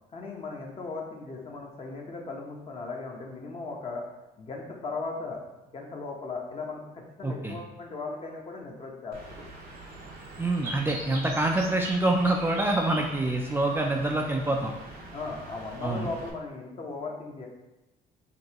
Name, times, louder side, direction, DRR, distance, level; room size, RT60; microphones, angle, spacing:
voice 1, 0.1-4.0 4.4-5.4 5.7-9.4 15.1-17.5, left 3 dB, 35° left, 0 dB, 1.0 m, -37 dB
voice 2, 7.2-7.5 10.4-14.7 15.8-16.1, right 2 dB, 15° right, 1 dB, 0.4 m, -26 dB
Bird, 9.1-16.3, right 2 dB, 85° right, 0.8 m, -41 dB
5.3 x 2.9 x 2.8 m, 0.98 s
cardioid pair, 110°, 17 cm